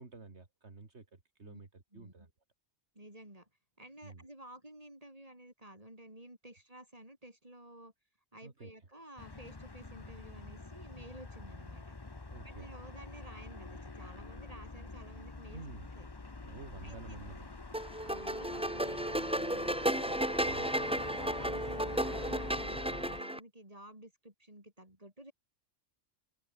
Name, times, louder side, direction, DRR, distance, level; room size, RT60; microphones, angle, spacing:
voice 1, 0.0-2.3 4.0-4.3 8.4-8.7 12.3-12.7 15.5-15.9 16.4-17.5 20.4-20.7, right 3 dB, 75° right, 2.8 m, -50 dB
voice 2, 1.9-2.3 2.9-3.5 3.8-7.9 8.3-12.0 12.4-15.6 15.9-16.1 16.8-17.3 18.0-25.3, right 1 dB, 30° right, 7.4 m, -53 dB
sound 1, 9.2-23.2, left 3 dB, 20° left, 1.1 m, -46 dB
sound 2, 17.7-23.4, right 1 dB, 5° right, 1.2 m, -33 dB
open air
omnidirectional pair, 1.2 m